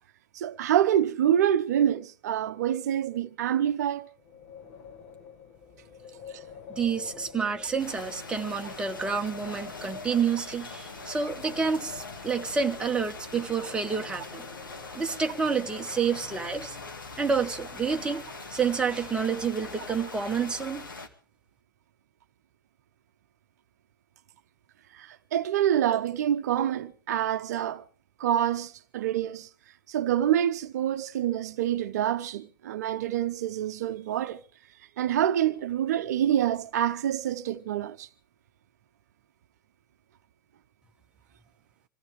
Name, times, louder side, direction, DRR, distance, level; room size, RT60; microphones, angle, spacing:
voice 1, 0.3-4.1 6.3-6.4 24.9-27.8 28.2-29.5 29.9-34.4 35.0-38.1, right 10 dB, 50° right, 0.8 m, -26 dB
Wind, 4.2-16.8, left 6 dB, 40° left, 1.5 m, -47 dB
voice 2, 6.7-14.4 14.9-16.8 17.2-18.2 18.5-20.8, right 6 dB, 10° right, 1.1 m, -29 dB
sound 1, 7.8-21.1, left 3 dB, 70° left, 2.2 m, -42 dB
26.0 x 16.0 x 3.2 m
figure-of-eight pair, 105°, 11 cm